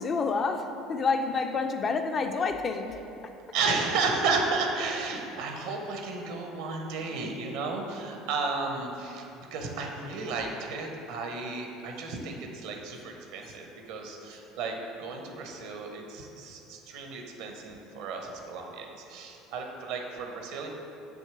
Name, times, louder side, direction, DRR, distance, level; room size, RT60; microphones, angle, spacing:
voice 1, 0.0-3.0, left 4 dB, 35° left, 6 dB, 0.4 m, -28 dB
voice 2, 3.5-20.7, right 4 dB, 65° right, 2 dB, 0.7 m, -33 dB
6.3 x 2.9 x 5.7 m, 2.9 s
hypercardioid pair, 65°, 0 cm